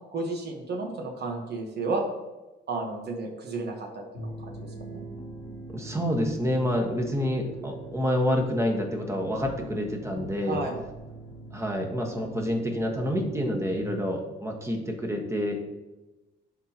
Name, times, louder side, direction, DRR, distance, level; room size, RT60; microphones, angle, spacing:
voice 1, 0.1-2.0 2.7-4.0 4.4-5.0 10.4-10.8, right 3 dB, 55° right, 1 dB, 1.3 m, -32 dB
sound 1, 4.1-13.8, right 2 dB, 85° left, 1.3 m, -42 dB
voice 2, 5.7-10.6 11.5-15.5, equal, 15° right, 2 dB, 1.4 m, -28 dB
11.0 x 3.9 x 2.9 m, 1.1 s
cardioid pair, 90°, 20 cm